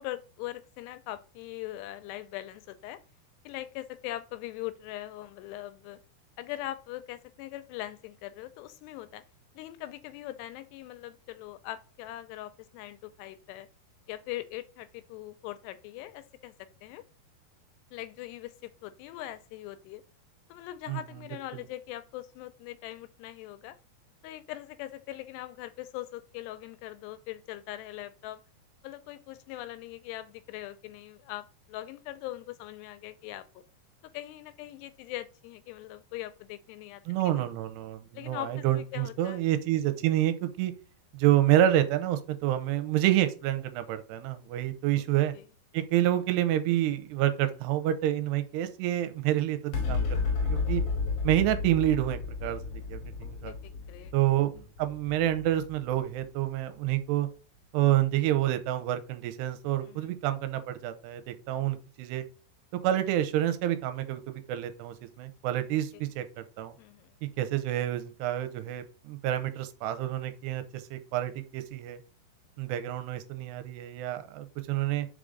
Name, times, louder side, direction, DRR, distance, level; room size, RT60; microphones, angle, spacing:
voice 1, 0.0-3.0 3.5-6.0 6.4-9.2 9.6-13.7 14.1-17.0 17.9-20.0 20.5-23.8 24.2-28.4 28.8-33.6 34.1-37.4 38.1-39.4 45.3-45.4 53.2-54.1 59.8-60.1 65.9-66.0 66.8-67.1, left 15 dB, 85° left, 2.7 m, -41 dB
voice 2, 37.1-40.7 41.1-45.4 45.7-50.8 51.2-53.5 54.1-57.3 57.7-62.3 62.8-66.3 66.6-66.8 67.2-72.0 72.6-75.1, right 13 dB, 90° right, 2.8 m, -28 dB
sound 1, 49.7-56.4, left 4 dB, 60° left, 1.7 m, -32 dB
5.3 x 5.0 x 3.9 m
omnidirectional pair, 4.9 m